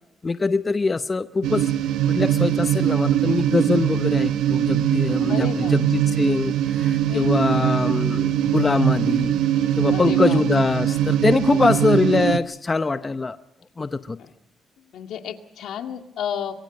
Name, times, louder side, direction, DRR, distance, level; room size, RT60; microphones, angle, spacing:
voice 1, 0.2-1.7 2.1-9.3 9.7-13.4 13.8-14.2, left 3 dB, 25° left, 11 dB, 0.8 m, -23 dB
sound 1, 1.4-12.4, right 11 dB, 85° right, 1.1 m, -22 dB
voice 2, 5.3-5.9 7.1-8.0 9.6-10.4 11.4-11.8 14.9-16.5, left 9 dB, 75° left, 5 dB, 2.2 m, -33 dB
25.0 x 23.0 x 5.4 m, 0.87 s
cardioid pair, 90°, 0 cm